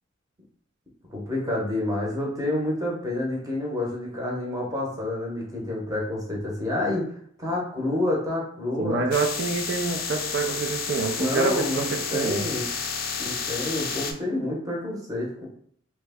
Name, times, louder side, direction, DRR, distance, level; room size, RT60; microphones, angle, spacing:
voice 1, 1.1-7.1 7.4-9.0 11.2-12.6 13.2-15.5, left 1 dB, 15° right, -3 dB, 0.8 m, -28 dB
voice 2, 8.8-12.5, right 4 dB, 60° right, 3 dB, 0.5 m, -27 dB
sound 1, 9.1-14.1, left 5 dB, 50° left, 0.4 m, -31 dB
3.0 x 2.1 x 3.5 m, 0.64 s
head